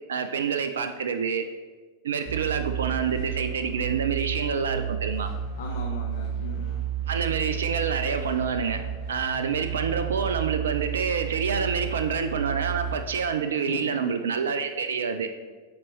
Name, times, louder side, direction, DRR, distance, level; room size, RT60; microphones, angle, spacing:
voice 1, 0.1-1.4 2.0-5.3 7.1-8.8 9.1-15.3, right 6 dB, 65° right, 9 dB, 0.3 m, -27 dB
sound 1, 2.3-12.9, right 8 dB, 30° left, 1.8 m, -32 dB
voice 2, 5.6-6.8 13.5-14.1, left 4 dB, 60° left, 0 dB, 0.6 m, -38 dB
8.5 x 4.0 x 3.0 m, 1.4 s
figure-of-eight pair, 90°, 0 cm